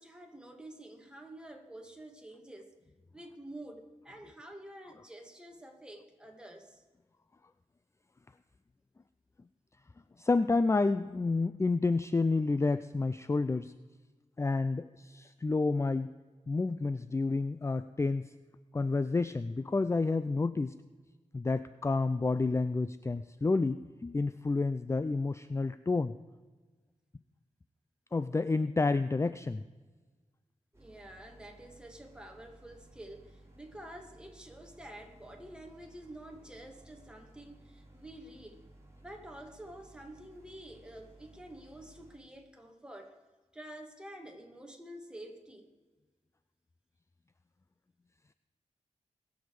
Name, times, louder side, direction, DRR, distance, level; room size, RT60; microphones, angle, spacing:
voice 1, 0.0-2.7 3.1-6.8 30.7-38.6 38.9-43.2 43.5-45.7, right 1 dB, 5° right, 2 dB, 2.1 m, -49 dB
voice 2, 10.2-13.7 14.4-16.1 16.5-18.3 18.7-20.7 21.3-26.1 28.1-29.6, left 3 dB, 25° left, 13 dB, 0.4 m, -29 dB
sound 1, 30.7-42.2, right 1 dB, 25° right, 3.3 m, -58 dB
20.5 x 7.2 x 4.8 m, 1.3 s
wide cardioid pair, 75°, 12 cm